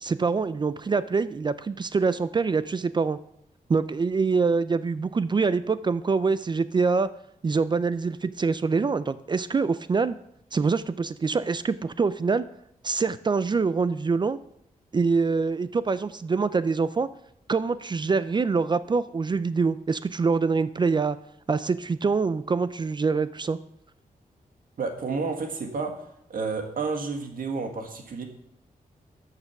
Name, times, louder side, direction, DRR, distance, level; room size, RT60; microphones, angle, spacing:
voice 1, 0.0-3.2 3.7-7.1 7.4-10.1 10.5-12.5 12.8-14.4 14.9-17.1 17.5-21.2 21.5-23.6, right 4 dB, 30° right, 14 dB, 0.4 m, -25 dB
voice 2, 24.8-26.0 26.3-28.2, right 4 dB, 75° right, 4 dB, 1.8 m, -30 dB
13.0 x 6.7 x 5.9 m, 0.74 s
wide cardioid pair, 165°, 15 cm